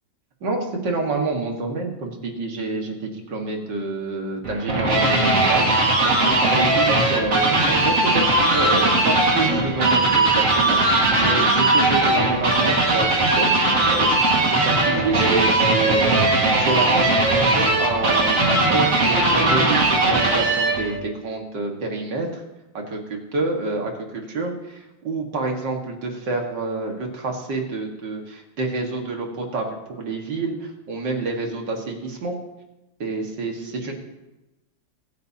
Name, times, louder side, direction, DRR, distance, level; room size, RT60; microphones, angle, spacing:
voice 1, 0.4-22.4 22.7-32.4 33.0-33.9, right 3 dB, 65° right, 1 dB, 2.4 m, -28 dB
sound 1, 4.4-20.9, right 2 dB, 45° right, 2.3 m, -19 dB
24.0 x 9.2 x 2.9 m, 1.0 s
omnidirectional pair, 2.1 m